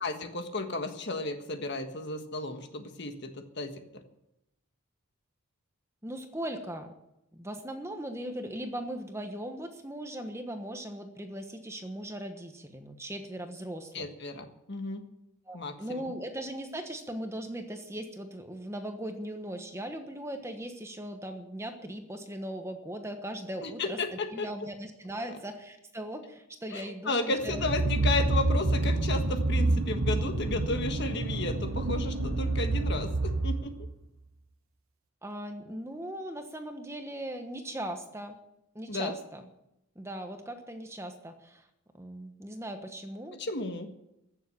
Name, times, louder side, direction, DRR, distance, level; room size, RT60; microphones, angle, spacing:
voice 1, 0.0-3.7 13.9-15.0 15.5-16.1 23.6-24.5 26.7-33.7 38.9-39.1 43.3-43.9, left 2 dB, 50° left, 6 dB, 1.5 m, -33 dB
voice 2, 6.0-6.9 7.3-14.1 15.5-27.7 35.2-38.4 38.7-39.4 39.9-41.7 42.0-43.4, right 1 dB, 10° right, 6 dB, 1.2 m, -39 dB
sound 1, 27.4-34.0, right 2 dB, 70° right, 1.0 m, -28 dB
15.0 x 7.4 x 9.8 m, 0.85 s
head